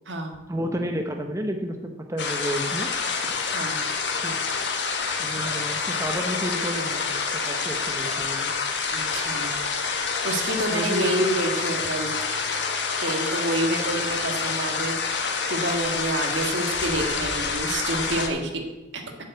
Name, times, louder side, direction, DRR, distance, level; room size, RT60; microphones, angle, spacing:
voice 1, 0.5-2.9 4.2-4.4 5.2-8.5 10.7-11.1, equal, 15° right, 4 dB, 0.8 m, -31 dB
sound 1, 2.2-18.3, left 5 dB, 65° left, 1.5 m, -27 dB
voice 2, 8.9-9.5 10.2-12.3 13.0-18.6 18.9-19.0, right 1 dB, 65° right, 4 dB, 1.7 m, -28 dB
8.2 x 7.5 x 8.1 m, 1.1 s
head